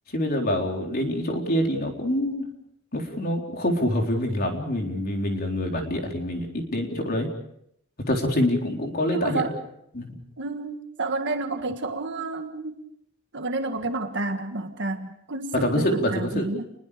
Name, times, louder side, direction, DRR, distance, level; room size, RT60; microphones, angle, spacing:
voice 1, 0.1-2.5 2.9-7.3 8.1-9.4 9.9-10.2 15.5-16.5, left 1 dB, 45° left, 2 dB, 4.0 m, -26 dB
voice 2, 9.1-9.6 10.4-12.8 13.3-16.7, right 2 dB, 60° right, 6 dB, 1.8 m, -30 dB
29.5 x 21.5 x 5.2 m, 0.73 s
head